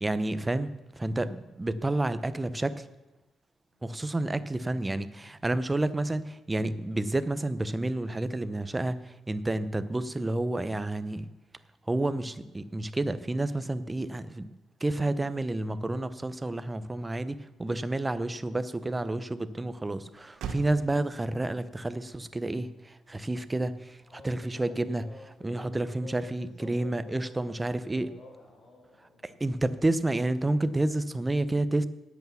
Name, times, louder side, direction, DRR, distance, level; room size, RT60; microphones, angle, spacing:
voice 1, 0.0-2.8 3.8-11.3 11.9-14.5 14.8-25.1 25.4-28.1 29.2-31.8, right 2 dB, 10° right, 13 dB, 0.7 m, -30 dB
Motor vehicle (road), 20.3-24.9, right 5 dB, 85° right, 1.5 m, -48 dB
voice 2, 24.0-24.3 24.7-29.4, left 3 dB, 45° left, -1 dB, 6.0 m, -51 dB
18.5 x 8.3 x 7.1 m, 1.0 s
cardioid pair, 170°, 0 cm